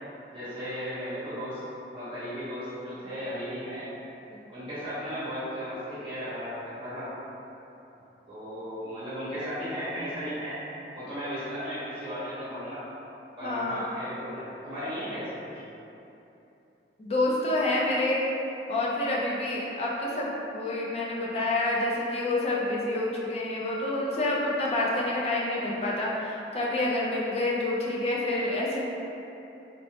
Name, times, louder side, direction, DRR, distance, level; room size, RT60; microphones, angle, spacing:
voice 1, 0.3-1.6 1.9-3.9 4.5-7.1 8.3-10.6 10.9-12.8 13.4-15.5, equal, 30° right, -13 dB, 0.8 m, -35 dB
voice 2, 13.4-13.9 17.0-18.2 18.7-28.8, left 2 dB, 35° left, -4 dB, 0.4 m, -28 dB
3.0 x 2.0 x 2.7 m, 2.9 s
head